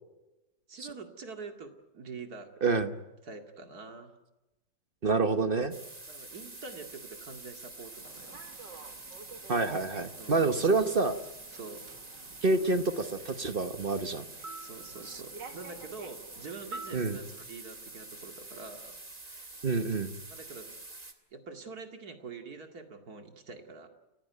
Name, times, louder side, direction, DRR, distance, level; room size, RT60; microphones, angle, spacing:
voice 1, 0.7-2.5 3.2-4.2 6.1-8.4 10.2-10.8 11.5-11.9 14.6-19.6 20.3-20.7 21.3-23.9, right 4 dB, 55° right, 5 dB, 2.7 m, -45 dB
voice 2, 2.6-2.9 5.0-5.7 9.5-11.1 12.4-14.3 16.9-17.2 19.6-20.1, right 3 dB, 35° right, 10 dB, 1.0 m, -27 dB
sound 1, 5.7-21.1, right 2 dB, 20° right, 2.0 m, -47 dB
Human voice / Subway metro underground, 8.0-17.4, right 4 dB, 75° right, 2.4 m, -50 dB
30.0 x 15.5 x 9.3 m, 1.0 s
omnidirectional pair, 2.0 m